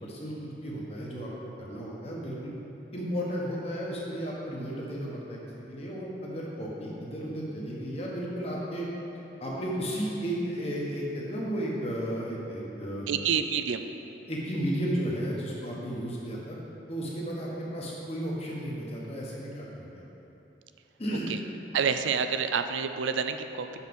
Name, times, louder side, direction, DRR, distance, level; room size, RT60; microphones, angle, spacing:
voice 1, 0.0-1.3 1.6-2.5 2.9-8.9 9.4-13.1 14.3-16.6 16.9-20.0 21.0-21.3, equal, 35° left, -4 dB, 1.3 m, -34 dB
voice 2, 13.1-13.8 15.7-15.9 21.3-21.4 21.7-23.8, right 6 dB, 85° right, 8 dB, 0.4 m, -28 dB
6.4 x 5.7 x 6.0 m, 2.9 s
head